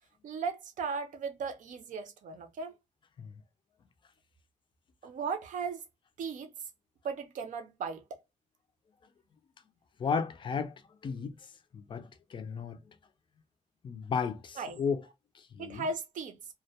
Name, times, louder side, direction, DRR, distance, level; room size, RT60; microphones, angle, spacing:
voice 1, 0.2-2.7 5.0-5.8 6.2-6.5 7.0-8.2 14.6-14.8 15.6-16.4, right 4 dB, 80° right, 0.5 m, -37 dB
voice 2, 10.0-10.7 11.0-11.3 11.7-12.8 13.8-15.0 15.6-15.8, left 6 dB, 40° left, 0.4 m, -33 dB
2.1 x 2.1 x 2.7 m
wide cardioid pair, 170°, 13 cm